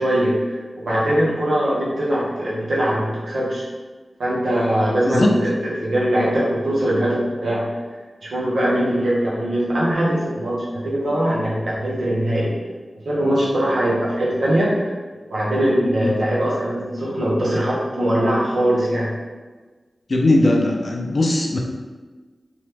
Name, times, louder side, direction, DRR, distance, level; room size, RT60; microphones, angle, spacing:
voice 1, 0.0-3.7 4.2-5.5 5.8-7.7 8.2-10.6 10.8-12.5 13.0-14.9 15.3-19.1, right 1 dB, 85° right, -6 dB, 0.9 m, -21 dB
voice 2, 20.1-21.6, left 1 dB, 65° left, 1 dB, 0.5 m, -18 dB
2.9 x 2.3 x 3.3 m, 1.3 s
wide cardioid pair, 65°, 0 cm